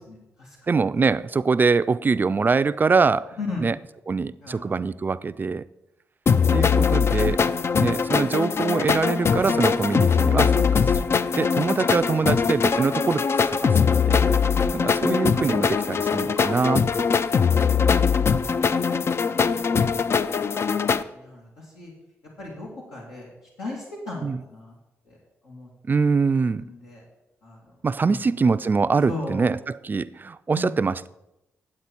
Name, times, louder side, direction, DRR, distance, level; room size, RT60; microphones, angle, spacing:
voice 1, 0.1-0.5 3.4-3.7 4.4-4.7 9.4-9.7 12.2-12.3 20.7-20.8 21.1-21.5 21.7-21.9 22.4-23.3 23.6-24.7 25.4-25.7 26.6-27.0 27.4-27.6 28.0-28.2 29.1-29.5 30.5-30.7, left 2 dB, 85° left, 2.4 m, -36 dB
voice 2, 0.7-3.8 4.1-5.6 6.5-7.4 7.8-11.0 11.4-13.8 14.1-14.4 14.7-17.1 24.2-24.4 25.9-26.6 27.8-31.1, right 4 dB, 35° right, 0.4 m, -24 dB
sound 1, 6.3-21.0, left 6 dB, 50° left, 0.4 m, -21 dB
9.7 x 7.8 x 4.4 m
supercardioid pair, 55°, 6 cm